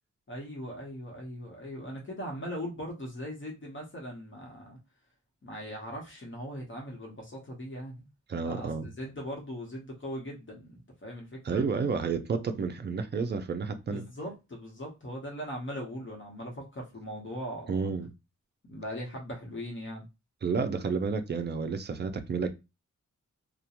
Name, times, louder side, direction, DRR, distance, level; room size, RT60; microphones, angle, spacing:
voice 1, 0.3-4.8 5.4-8.1 8.4-11.6 13.9-17.8 18.7-20.1, equal, 40° left, 0.9 m, -40 dB
voice 2, 8.3-8.9 11.4-14.0 17.7-18.1 20.4-22.5, right 5 dB, 35° right, 0.4 m, -30 dB
2.4 x 2.1 x 2.8 m
wide cardioid pair, 105°, 31 cm